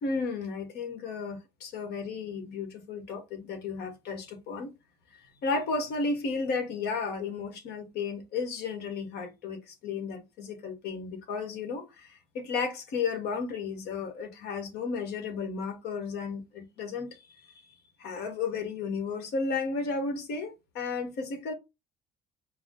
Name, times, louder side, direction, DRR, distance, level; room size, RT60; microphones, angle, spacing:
voice 1, 0.0-4.7 5.4-17.1 18.0-21.5, left 4 dB, 75° left, 1.3 m, -33 dB
4.7 x 2.0 x 3.7 m
cardioid pair, 110°, 17 cm